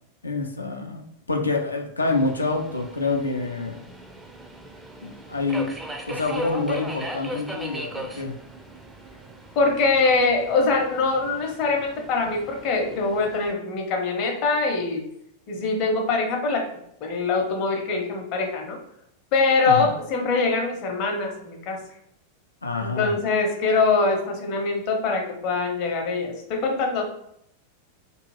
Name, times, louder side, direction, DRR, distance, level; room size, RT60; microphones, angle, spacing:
voice 1, 0.2-1.0 1.3-3.8 5.0-5.7 6.1-8.3 19.7-19.9 22.6-23.1, left 3 dB, 80° left, 2 dB, 0.5 m, -27 dB
Subway metro underground, 2.0-13.5, right 1 dB, 10° right, 0.4 m, -38 dB
voice 2, 9.6-15.0 15.5-16.7 17.0-18.8 19.3-21.8 22.8-27.0, left 3 dB, 40° left, 2 dB, 0.7 m, -23 dB
2.7 x 2.4 x 3.1 m, 0.74 s
figure-of-eight pair, 90°, 0 cm